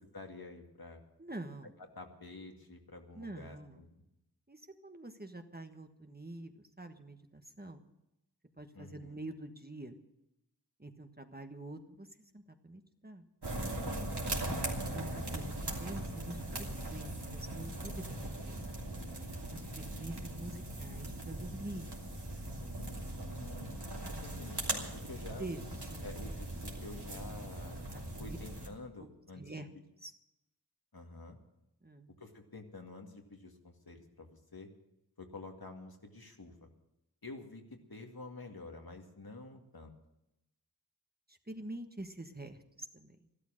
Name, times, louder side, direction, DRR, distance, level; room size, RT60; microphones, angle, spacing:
voice 1, 0.1-1.0 2.0-4.0 8.7-9.2 14.9-15.1 22.8-25.5 26.0-27.8 28.2-29.6 30.9-31.4 32.2-34.7 35.2-36.7 37.2-39.9, left 3 dB, 65° left, 3 dB, 2.1 m, -49 dB
voice 2, 1.2-1.7 3.1-3.8 4.5-7.8 8.6-10.0 10.8-12.1 12.3-13.2 14.9-15.5 15.8-18.7 19.5-21.9 25.4-25.6 25.9-26.1 27.9-28.4 29.0-29.1 29.4-29.7 30.0-30.1 31.8-32.1 41.3-43.2, right 2 dB, 25° right, 6 dB, 1.3 m, -46 dB
sound 1, 13.4-28.7, right 1 dB, 80° right, 3.1 m, -40 dB
14.5 x 12.5 x 6.5 m, 0.89 s
wide cardioid pair, 50°, 39 cm